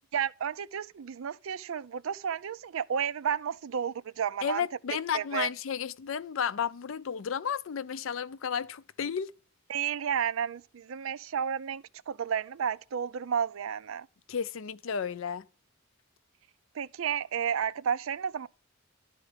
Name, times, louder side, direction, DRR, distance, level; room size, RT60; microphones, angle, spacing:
voice 1, 0.1-4.6 5.1-5.5 9.7-14.1 16.7-18.5, right 8 dB, 80° right, 0.4 m, -32 dB
voice 2, 4.4-9.3 14.3-15.4, left 7 dB, 70° left, 0.4 m, -32 dB
11.5 x 4.4 x 5.0 m
head